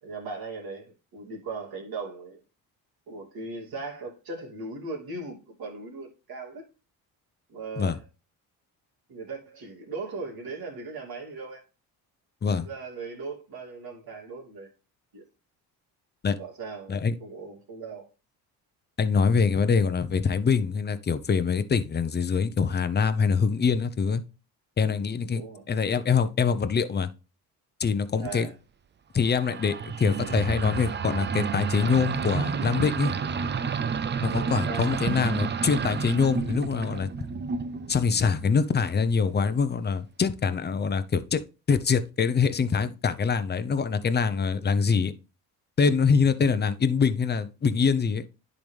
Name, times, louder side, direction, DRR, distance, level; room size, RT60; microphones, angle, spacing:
voice 1, 0.0-2.4 3.1-6.7 7.5-8.0 9.1-11.6 12.4-14.7 15.1-15.2 16.4-18.1 25.3-25.6 28.2-28.5 34.3-35.0, right 3 dB, 60° right, 3.0 m, -38 dB
voice 2, 19.0-24.2 24.8-25.4 25.7-27.1 27.8-28.5 29.1-33.1 34.2-37.1 37.9-41.4 41.7-45.1 45.8-48.2, left 5 dB, 25° left, 0.8 m, -24 dB
sound 1, 29.3-38.6, right 6 dB, 25° right, 0.5 m, -30 dB
10.5 x 4.0 x 3.3 m
supercardioid pair, 80°, 40 cm